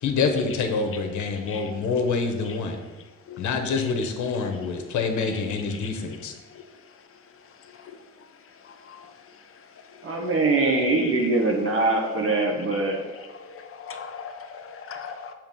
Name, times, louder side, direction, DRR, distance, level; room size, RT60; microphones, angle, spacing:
voice 1, 0.0-2.8 3.4-6.3, left 4 dB, 75° left, 5 dB, 1.0 m, -26 dB
voice 2, 10.0-13.0, right 3 dB, 45° right, 1 dB, 1.1 m, -23 dB
voice 3, 10.7-11.3 13.8-15.3, left 6 dB, 45° left, 5 dB, 0.8 m, -38 dB
6.9 x 2.9 x 5.3 m, 1.1 s
cardioid pair, 90°, 30 cm